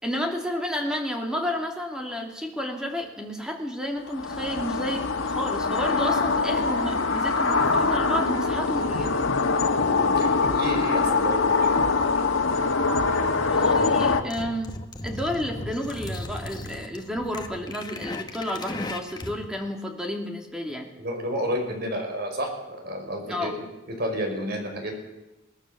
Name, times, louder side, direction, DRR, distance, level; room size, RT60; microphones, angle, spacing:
voice 1, 0.0-9.2 13.4-14.8 15.0-20.9 23.3-23.6, equal, 5° right, 2 dB, 2.8 m, -31 dB
sound 1, 4.1-14.2, left 4 dB, 90° left, 1.8 m, -23 dB
voice 2, 10.0-11.7 21.0-23.5 24.0-24.9, equal, 50° right, 3 dB, 5.4 m, -30 dB
sound 2, 13.0-19.5, left 1 dB, 20° left, 1.5 m, -37 dB
22.0 x 19.0 x 7.0 m, 1.0 s
head